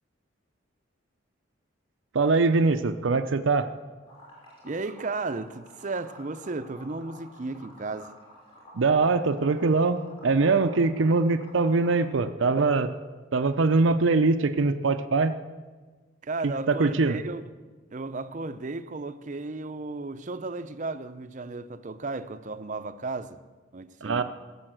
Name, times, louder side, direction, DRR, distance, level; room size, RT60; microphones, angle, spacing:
voice 1, 2.1-3.7 8.7-12.9 13.3-15.3 16.4-17.2 24.0-24.2, right 3 dB, 80° right, 0.6 m, -23 dB
Liquid, 4.1-12.1, left 1 dB, 30° left, 5.6 m, -51 dB
voice 2, 4.6-8.1 16.2-17.4 17.9-23.4 23.7-24.2, right 3 dB, 40° right, 0.6 m, -34 dB
17.0 x 6.9 x 7.7 m
head